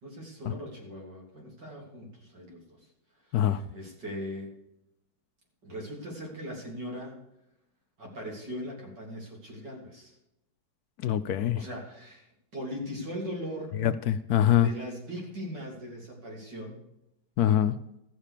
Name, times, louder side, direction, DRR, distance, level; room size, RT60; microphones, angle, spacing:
voice 1, 0.0-2.8 3.3-4.5 5.6-7.2 8.0-10.1 11.5-13.7 14.6-16.8, equal, 85° right, -1 dB, 3.8 m, -40 dB
voice 2, 11.0-11.6 13.8-14.7 17.4-17.8, left 10 dB, 70° left, 12 dB, 1.0 m, -24 dB
14.0 x 7.4 x 6.6 m, 0.84 s
omnidirectional pair, 1.9 m